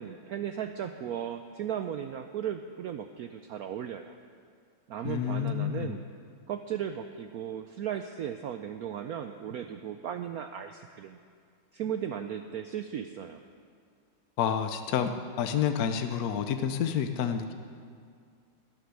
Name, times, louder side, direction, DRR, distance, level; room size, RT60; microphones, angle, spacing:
voice 1, 0.0-4.2 4.9-6.0 6.5-11.2 11.7-13.4, right 9 dB, 75° right, 8 dB, 0.9 m, -36 dB
voice 2, 5.0-6.0 14.4-17.5, left 8 dB, 65° left, 7 dB, 1.1 m, -29 dB
13.0 x 10.5 x 9.5 m, 2.2 s
omnidirectional pair, 2.1 m